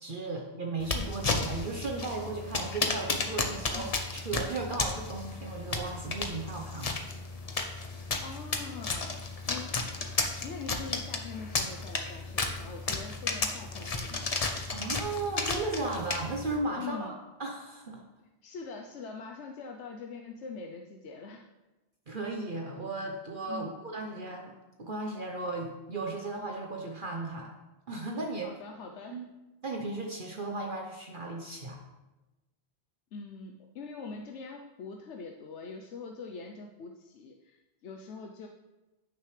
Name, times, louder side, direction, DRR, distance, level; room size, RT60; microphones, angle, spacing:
voice 1, 0.0-6.9 14.7-17.1 17.4-18.0 22.1-27.5 27.9-28.5 29.1-29.2 29.6-31.8, right 3 dB, 50° right, 0 dB, 1.1 m, -36 dB
sound 1, 0.8-16.6, left 3 dB, 35° left, 0.9 m, -33 dB
voice 2, 8.2-9.2 9.5-9.8 10.4-14.3 16.7-17.2 18.4-21.4 23.5-23.7 28.4-29.2 33.1-38.5, left 4 dB, 90° left, 2 dB, 1.1 m, -43 dB
14.5 x 6.6 x 3.3 m, 1.1 s
omnidirectional pair, 1.1 m